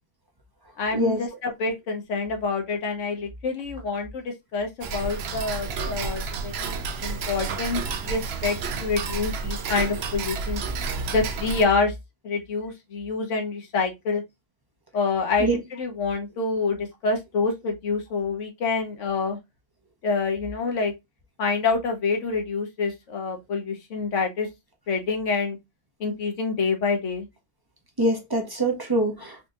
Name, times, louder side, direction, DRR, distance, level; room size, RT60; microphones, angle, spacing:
voice 1, 0.8-10.6 11.1-11.9 12.2-14.2 14.9-19.4 20.0-20.9 21.4-24.5 24.9-25.6 26.0-27.3, left 4 dB, 75° left, 1.2 m, -27 dB
Tick-tock, 4.8-11.6, right 4 dB, 65° right, 0.8 m, -30 dB
voice 2, 28.0-29.5, right 1 dB, 25° right, 0.5 m, -24 dB
4.3 x 2.7 x 2.4 m
omnidirectional pair, 1.3 m